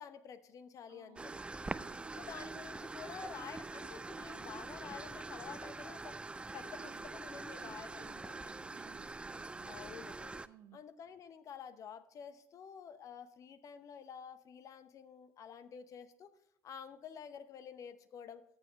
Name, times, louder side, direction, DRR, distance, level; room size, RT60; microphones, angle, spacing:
voice 1, 0.0-1.3 2.2-6.2 6.5-8.5 9.7-10.4 10.7-16.3 16.6-18.4, left 7 dB, 45° left, 12 dB, 0.9 m, -50 dB
voice 2, 0.9-1.4 1.8-2.3 6.8-7.1 7.6-9.9 10.4-10.8, right 10 dB, 55° right, 11 dB, 0.9 m, -60 dB
sound 1, 1.2-10.5, right 3 dB, 15° right, 0.5 m, -44 dB
14.0 x 7.1 x 3.3 m, 0.82 s
figure-of-eight pair, 60°, 7 cm